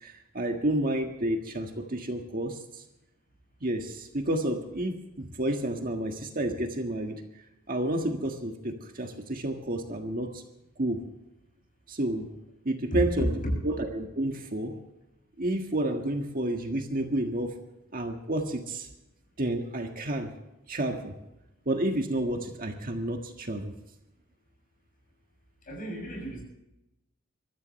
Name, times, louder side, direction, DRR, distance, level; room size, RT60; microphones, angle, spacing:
voice 1, 0.0-2.6 3.6-7.1 7.7-10.4 10.8-11.0 11.9-12.3 12.6-13.3 13.8-14.7 15.4-17.5 17.9-18.9 19.4-20.3 20.7-21.1 21.6-23.7, right 1 dB, 40° right, 4 dB, 1.6 m, -30 dB
voice 2, 12.9-13.5 25.7-26.4, equal, 40° left, 1 dB, 7.0 m, -30 dB
23.5 x 14.0 x 3.2 m, 0.92 s
head